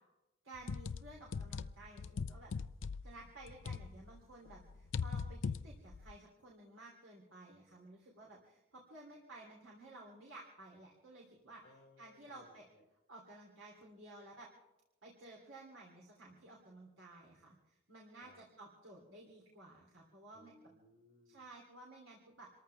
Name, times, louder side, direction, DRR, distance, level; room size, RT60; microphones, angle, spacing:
voice 1, 0.4-2.5 3.0-11.6 12.0-12.7 13.1-14.5 15.0-20.5 21.2-22.5, right 2 dB, 90° right, -2 dB, 3.3 m, -55 dB
sound 1, 0.6-4.2 4.5-6.1, left 5 dB, 80° left, 0.5 m, -40 dB
voice 2, 11.6-12.5 12.7-12.8 18.2-18.4 20.3-21.4, left 2 dB, 60° left, 1 dB, 4.0 m, -63 dB
27.5 x 14.0 x 3.5 m, 1.0 s
head